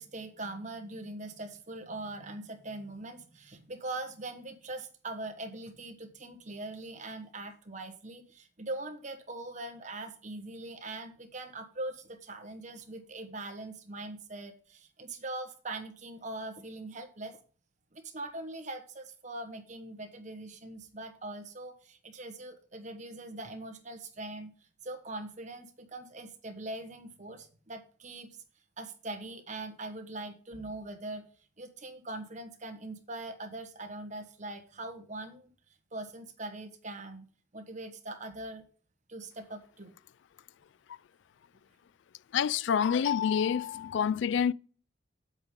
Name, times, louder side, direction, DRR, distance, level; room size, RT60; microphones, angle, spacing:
voice 1, 0.0-17.4 17.9-24.5 24.8-28.3 28.8-31.3 31.6-35.5 35.9-38.6 39.1-39.9, right 2 dB, 40° right, 1.3 m, -42 dB
voice 2, 42.3-44.5, left 7 dB, 65° left, 0.3 m, -27 dB
8.1 x 8.0 x 3.7 m
head